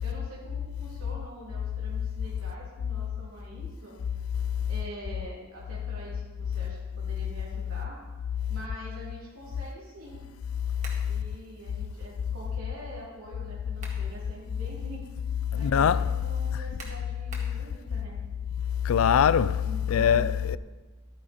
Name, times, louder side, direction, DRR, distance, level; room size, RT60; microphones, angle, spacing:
voice 1, 0.0-4.0 4.7-8.0 8.5-10.2 11.0-15.1 15.6-18.2 19.6-20.3, equal, 90° right, 2.9 m, -45 dB
sound 1, 10.8-11.1 13.5-14.1 14.6-14.7 16.8-17.6, right 2 dB, 35° right, 1.9 m, -45 dB
voice 2, 15.6-16.0 18.8-20.6, left 8 dB, 75° left, 0.4 m, -22 dB
12.5 x 9.2 x 4.3 m
head